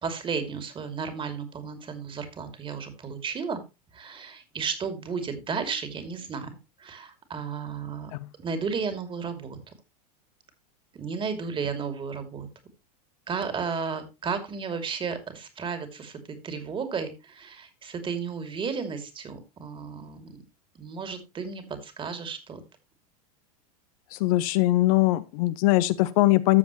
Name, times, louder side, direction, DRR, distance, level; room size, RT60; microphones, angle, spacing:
voice 1, 0.0-3.6 3.9-6.5 6.8-8.1 8.4-9.6 10.9-12.5 13.3-20.4 20.7-22.6, right 5 dB, 25° right, 8 dB, 2.7 m, -33 dB
voice 2, 24.1-26.6, left 17 dB, 60° left, 13 dB, 0.8 m, -21 dB
13.5 x 7.2 x 3.1 m, 0.25 s
hypercardioid pair, 105°, 20 cm